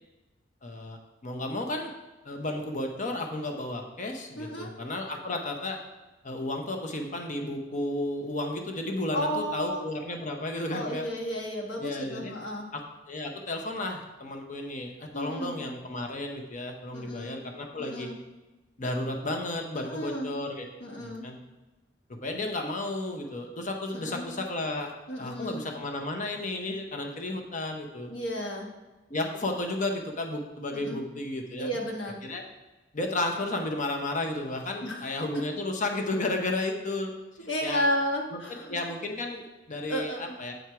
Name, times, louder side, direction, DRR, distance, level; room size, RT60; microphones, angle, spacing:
voice 1, 0.6-1.9 2.2-5.8 6.2-11.1 11.8-12.3 12.7-12.8 13.1-18.1 18.8-20.7 21.0-21.4 22.2-24.9 25.2-28.1 29.1-31.7 32.2-32.4 32.9-37.1 37.6-37.9 38.3-40.5, left 2 dB, 40° left, 3 dB, 0.8 m, -33 dB
voice 2, 4.4-4.7 9.1-9.9 10.7-12.7 15.1-15.6 16.9-17.4 17.8-18.2 19.7-20.3 20.8-21.3 23.9-24.3 25.1-25.6 28.1-28.7 30.7-31.1 31.6-32.2 34.8-35.4 37.5-38.8 39.9-40.4, equal, 75° left, 0 dB, 1.3 m, -33 dB
7.9 x 4.5 x 4.7 m, 1.1 s
head